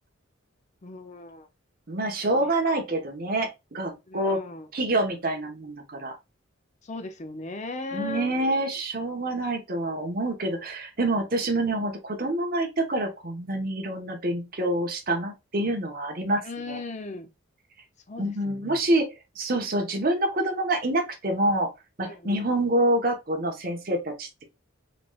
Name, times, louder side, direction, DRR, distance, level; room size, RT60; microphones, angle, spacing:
voice 1, 0.8-1.5 4.1-4.7 6.9-8.3 16.4-17.3 18.1-18.8 22.0-22.4, left 3 dB, 35° left, 0.5 m, -37 dB
voice 2, 1.9-4.4 4.7-6.1 7.9-16.8 18.2-21.7 22.0-24.5, right 1 dB, 45° right, 1.0 m, -27 dB
4.0 x 3.1 x 2.3 m
head